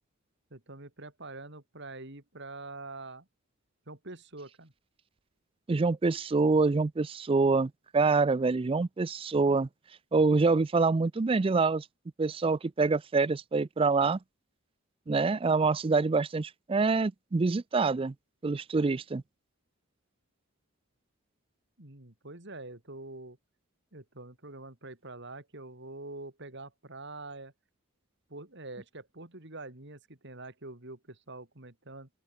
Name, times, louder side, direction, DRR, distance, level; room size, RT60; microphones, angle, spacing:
voice 1, 0.5-3.3 3.9-4.7 21.8-23.4 23.9-27.5 28.3-32.1, right 2 dB, 55° right, 3.1 m, -45 dB
voice 2, 5.7-9.7 10.1-11.8 12.2-14.2 15.1-18.1 18.4-19.2, right 4 dB, 25° right, 0.4 m, -26 dB
open air
head